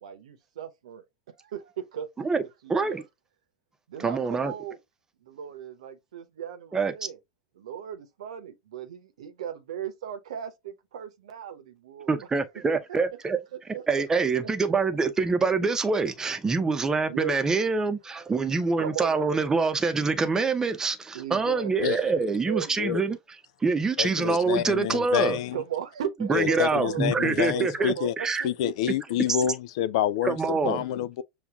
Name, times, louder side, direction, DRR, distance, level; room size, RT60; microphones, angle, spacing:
voice 1, 0.0-3.0 3.9-4.8 5.2-7.2 7.6-12.1 13.5-14.3 17.1-17.4 18.8-19.3 21.1-21.9 22.2-22.8 25.5-29.1, right 9 dB, 70° right, 0.8 m, -37 dB
voice 2, 2.7-3.0 4.0-4.5 6.7-6.9 12.1-13.4 13.9-23.2 23.6-25.4 26.3-28.4 30.2-30.8, right 4 dB, 15° right, 0.7 m, -25 dB
voice 3, 24.0-25.6 26.3-28.1 28.4-31.2, left 10 dB, 60° left, 0.4 m, -27 dB
6.9 x 2.4 x 2.3 m
hypercardioid pair, 90°, 4 cm